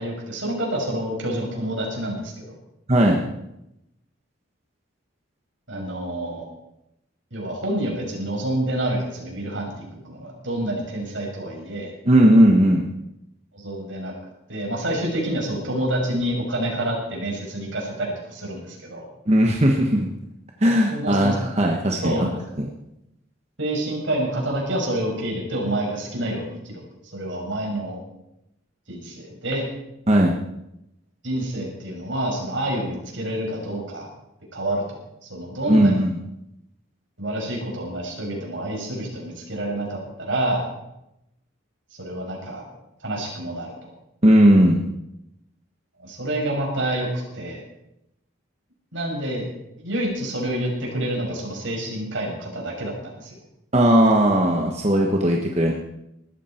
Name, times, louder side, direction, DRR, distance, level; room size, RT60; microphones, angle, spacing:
voice 1, 0.0-2.5 5.7-6.4 7.3-11.9 13.5-14.1 14.5-19.1 20.9-21.3 22.0-22.4 23.6-26.8 27.1-28.0 28.9-29.6 31.2-34.1 34.5-36.1 37.2-40.7 42.0-42.6 43.0-43.7 46.0-47.1 47.3-47.6 48.9-49.4 49.8-53.4, right 1 dB, 70° right, -1 dB, 6.2 m, -28 dB
voice 2, 2.9-3.2 12.0-12.8 19.3-20.1 20.6-22.3 22.6-22.7 30.1-30.3 35.7-36.1 44.2-44.9 53.7-55.7, equal, 30° right, 0 dB, 1.3 m, -17 dB
19.5 x 13.5 x 4.5 m, 0.84 s
head